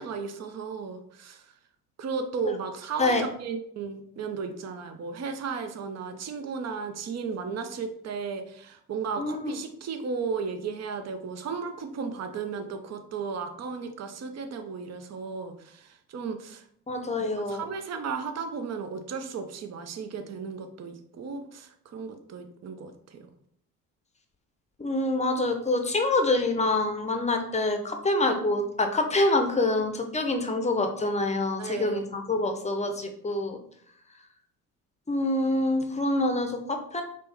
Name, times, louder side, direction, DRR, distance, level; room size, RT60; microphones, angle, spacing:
voice 1, 0.0-1.4 2.0-16.6 17.2-23.3 31.6-32.0, right 5 dB, 35° right, 7 dB, 0.7 m, -35 dB
voice 2, 9.2-9.6 16.9-17.7 24.8-33.6 35.1-37.0, left 2 dB, 15° left, 5 dB, 0.8 m, -26 dB
4.2 x 3.1 x 3.5 m, 0.66 s
figure-of-eight pair, 50°, 47 cm